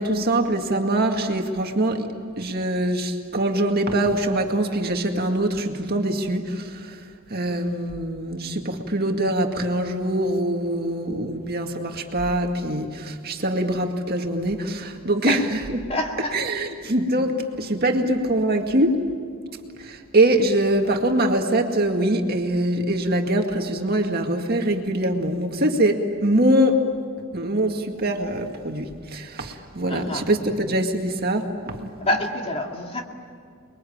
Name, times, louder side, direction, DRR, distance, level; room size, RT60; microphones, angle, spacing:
voice 1, 0.0-2.1 2.4-7.0 7.3-15.8 16.3-19.0 19.8-26.8 27.3-31.9, right 1 dB, 45° right, 3 dB, 2.1 m, -23 dB
voice 2, 15.9-16.4 29.9-30.2 32.0-33.0, left 1 dB, 25° left, 1 dB, 2.5 m, -27 dB
29.5 x 22.0 x 8.8 m, 2.1 s
head